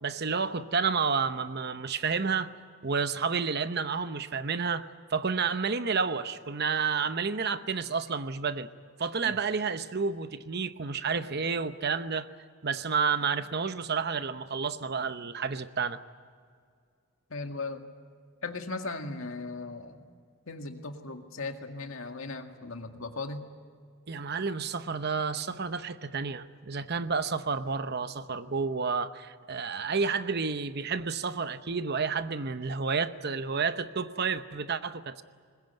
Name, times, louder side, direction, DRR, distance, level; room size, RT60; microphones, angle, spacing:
voice 1, 0.0-2.5 2.8-8.7 9.0-12.3 12.6-16.0 24.1-35.2, right 5 dB, 50° right, 11 dB, 0.9 m, -30 dB
voice 2, 17.3-17.8 18.4-20.0 20.5-23.4, left 3 dB, 75° left, 5 dB, 2.0 m, -37 dB
21.5 x 20.5 x 9.3 m, 2.1 s
head